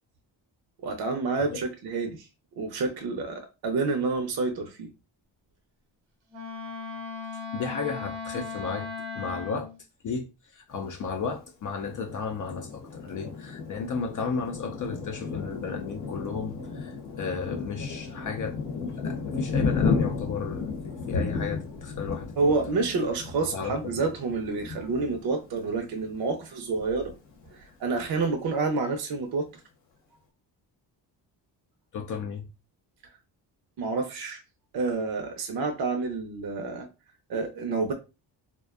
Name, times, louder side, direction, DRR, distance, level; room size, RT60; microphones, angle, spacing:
voice 1, 0.8-2.3 2.6-4.9 22.4-27.1 27.5-29.5 33.8-34.4 34.7-36.9 37.3-37.9, right 3 dB, 55° right, 0.6 m, -28 dB
Wind instrument woodwind instrument, 6.3-9.8, left 4 dB, 85° right, 0.9 m, -37 dB
voice 2, 7.5-8.9 9.1-9.7 10.0-22.5 23.4-24.0 31.9-32.5, left 5 dB, 45° left, 0.4 m, -34 dB
Thunder, 11.8-26.1 26.6-26.8 27.1-27.7, left 4 dB, 75° left, 0.8 m, -33 dB
2.4 x 2.2 x 2.3 m
cardioid pair, 80°, 44 cm